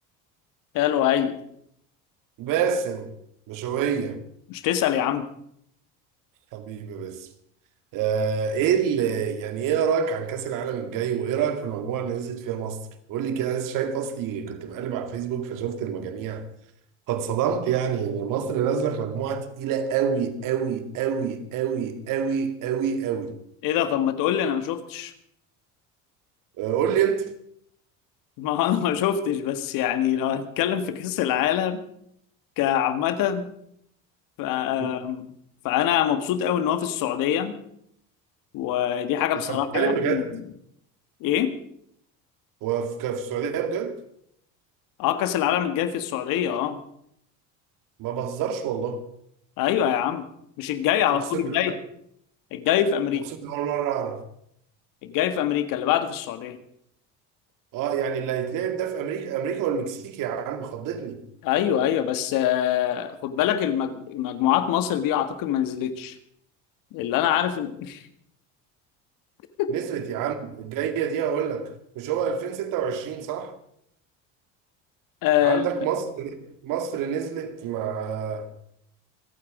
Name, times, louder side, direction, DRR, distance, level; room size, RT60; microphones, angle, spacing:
voice 1, 0.7-1.4 4.5-5.3 23.6-25.1 28.4-31.8 32.6-33.5 34.4-35.3 35.6-37.6 38.5-40.2 41.2-41.6 45.0-46.8 49.6-50.2 50.6-51.8 52.5-53.3 55.0-56.6 61.4-66.2 66.9-68.0 69.6-69.7 75.2-75.7, left 10 dB, 65° left, 1.8 m, -24 dB
voice 2, 2.4-3.1 3.5-4.2 6.5-7.3 7.9-16.5 17.1-23.4 26.6-27.3 34.8-34.9 39.5-40.4 42.6-44.0 48.0-49.0 51.1-51.8 53.4-54.2 57.7-61.2 69.7-73.5 75.4-78.5, right 7 dB, 65° right, 2.2 m, -27 dB
26.0 x 8.9 x 5.0 m
supercardioid pair, 85°, 36 cm